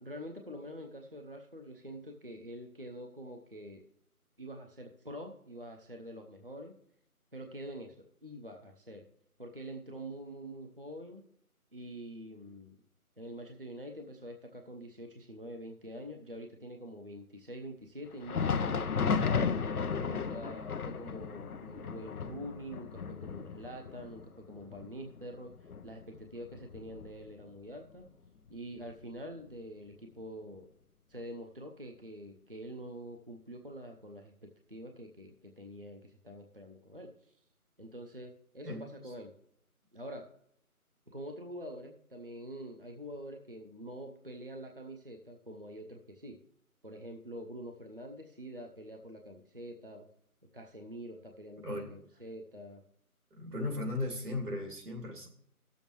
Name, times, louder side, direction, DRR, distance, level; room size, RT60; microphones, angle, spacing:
voice 1, 0.0-3.8 4.4-6.7 7.3-9.0 9.4-11.2 11.7-12.8 13.2-28.1 28.5-30.7 31.1-34.3 34.7-37.4 37.8-39.3 39.9-40.2 41.1-46.4 46.8-50.1 50.5-52.8, equal, 40° right, 2 dB, 0.6 m, -45 dB
Thunder, 18.1-27.6 27.9-28.1 28.8-28.9 29.9-30.0, left 5 dB, 75° left, 0.7 m, -35 dB
voice 2, 53.3-55.3, left 2 dB, 85° right, 1 dB, 2.5 m, -36 dB
16.5 x 7.1 x 3.0 m, 0.71 s
figure-of-eight pair, 175°, 45 cm